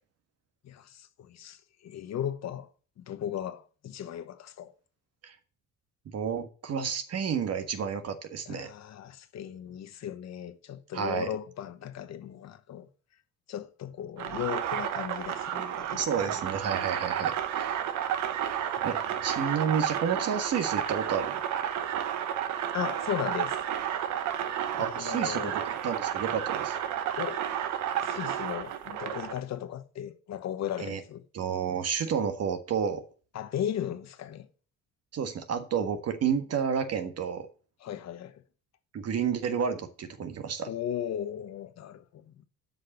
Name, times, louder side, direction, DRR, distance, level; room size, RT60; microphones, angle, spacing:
voice 1, 0.6-2.7 3.0-4.7 8.5-12.9 13.5-16.4 18.6-19.8 22.7-23.6 24.7-25.6 27.2-27.5 28.0-31.2 33.3-34.5 37.8-38.4 40.7-42.4, left 10 dB, 65° left, 1.1 m, -37 dB
voice 2, 6.1-8.7 10.9-11.3 15.9-17.8 18.8-21.4 24.8-26.8 30.8-31.0 31.3-33.0 35.1-37.5 38.9-40.7, right 7 dB, 55° right, 1.5 m, -30 dB
sound 1, 14.2-29.4, right 10 dB, 80° right, 1.1 m, -31 dB
8.0 x 5.3 x 7.1 m
cardioid pair, 85°, 29 cm